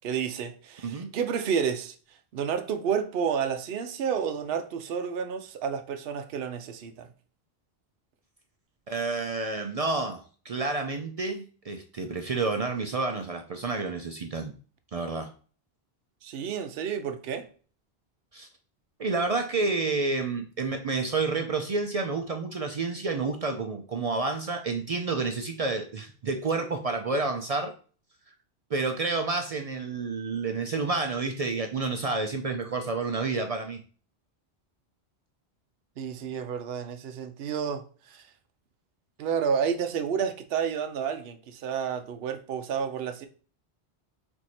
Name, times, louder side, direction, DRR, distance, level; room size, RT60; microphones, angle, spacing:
voice 1, 0.0-1.9 2.3-7.1 16.2-17.5 36.0-38.2 39.2-43.3, right 7 dB, 70° right, 0.8 m, -30 dB
voice 2, 8.9-14.5 14.9-15.3 18.3-18.5 19.0-27.7 28.7-33.8, right 3 dB, 50° right, 0.4 m, -29 dB
4.6 x 2.6 x 4.2 m
omnidirectional pair, 1.1 m